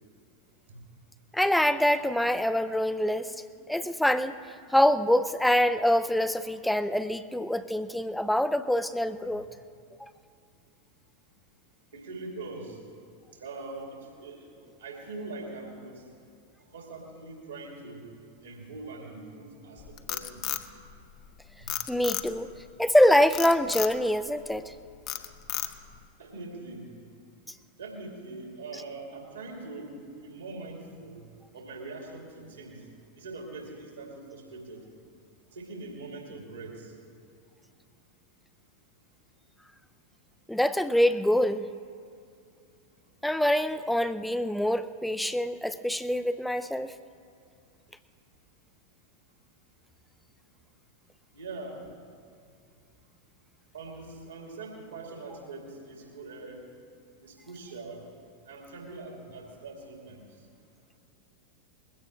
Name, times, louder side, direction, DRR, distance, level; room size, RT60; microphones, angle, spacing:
voice 1, 1.3-3.4 3.7-4.3 4.7-9.5 10.0-10.1 21.9-22.5 22.8-24.7 40.5-41.7 43.2-46.9, left 1 dB, ahead, 13 dB, 0.5 m, -25 dB
voice 2, 11.9-12.8 13.4-14.4 14.8-16.0 16.7-18.0 18.4-20.5 21.6-21.7 26.2-26.9 27.8-29.9 30.2-31.2 31.5-32.8 33.2-34.8 35.5-36.9 51.3-51.8 53.7-56.7 57.2-58.0 58.4-60.3, right 3 dB, 75° right, 0 dB, 2.7 m, -42 dB
Frog, 19.8-21.3 21.7-22.6 23.3-24.0 24.5-24.7 25.1-26.0, left 13 dB, 40° left, 0.7 m, -33 dB
21.0 x 16.0 x 3.2 m, 2.4 s
figure-of-eight pair, 90°, 0 cm